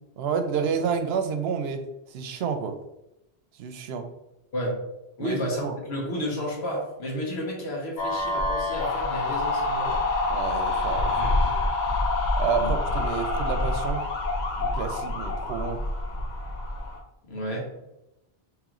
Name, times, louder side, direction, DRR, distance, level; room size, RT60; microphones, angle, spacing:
voice 1, 0.2-2.7 3.6-4.1 5.2-5.8 10.3-11.3 12.4-14.0 14.6-15.8, right 6 dB, 80° right, 7 dB, 0.8 m, -29 dB
voice 2, 5.2-10.0 11.1-11.7 12.6-12.7 17.3-17.7, equal, 85° left, -1 dB, 1.3 m, -32 dB
sound 1, 8.0-17.0, left 2 dB, 50° left, 0.7 m, -27 dB
3.1 x 3.0 x 3.7 m, 0.89 s
omnidirectional pair, 1.0 m